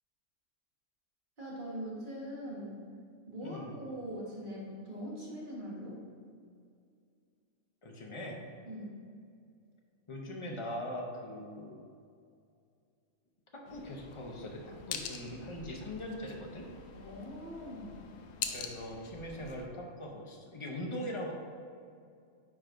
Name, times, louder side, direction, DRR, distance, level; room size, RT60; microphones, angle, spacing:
voice 1, 1.4-2.8 3.3-6.0 8.7-8.9 16.9-18.0, equal, 35° right, -5 dB, 1.5 m, -42 dB
voice 2, 3.4-3.8 7.8-8.4 10.1-11.8 13.5-16.6 18.5-21.3, equal, 35° left, 0 dB, 0.5 m, -41 dB
sound 1, 13.6-19.7, left 7 dB, 85° left, 1.1 m, -44 dB
9.1 x 4.8 x 2.6 m, 2.4 s
omnidirectional pair, 1.5 m